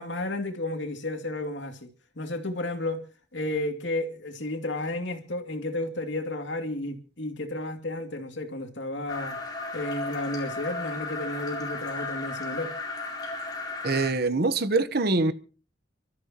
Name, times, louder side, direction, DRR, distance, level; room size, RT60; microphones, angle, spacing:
voice 1, 0.0-1.9 2.1-3.1 3.3-9.4 9.7-12.7, left 1 dB, 80° left, 2.6 m, -32 dB
sound 1, 9.1-14.1, left 3 dB, 25° left, 4.4 m, -35 dB
voice 2, 13.8-15.3, right 3 dB, 55° right, 1.1 m, -24 dB
29.5 x 13.5 x 3.0 m
head